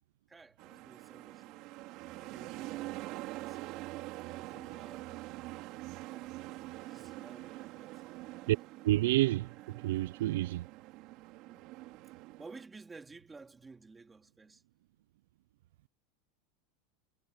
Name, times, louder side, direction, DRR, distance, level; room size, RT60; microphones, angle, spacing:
voice 1, 0.3-1.6 2.1-3.8 4.2-5.4 6.0-8.0 11.4-12.1 12.4-14.6, right 4 dB, 10° right, 2.7 m, -55 dB
sound 1, 0.6-12.6, right 19 dB, 40° right, 3.8 m, -45 dB
voice 2, 8.8-9.5 9.8-10.7, right 16 dB, 75° right, 0.4 m, -28 dB
supercardioid pair, 175°, 0 cm